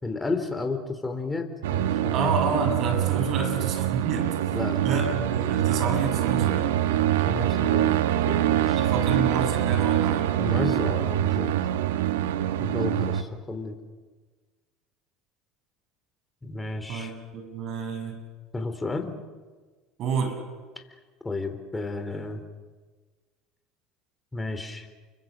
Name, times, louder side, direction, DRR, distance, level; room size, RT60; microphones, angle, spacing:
voice 1, 0.0-2.3 4.5-4.8 7.3-8.8 10.4-11.5 12.6-13.8 16.4-17.1 18.5-19.2 20.8-20.9 21.2-22.4 24.3-24.9, left 3 dB, 15° left, 6 dB, 4.1 m, -32 dB
sound 1, 1.6-13.2, right 11 dB, 85° right, 1.3 m, -24 dB
voice 2, 2.1-4.3 4.8-6.8 8.8-10.3 16.9-18.1 20.0-20.4, right 5 dB, 55° right, 5 dB, 7.6 m, -29 dB
30.0 x 25.0 x 6.9 m, 1.4 s
hypercardioid pair, 85°, 0 cm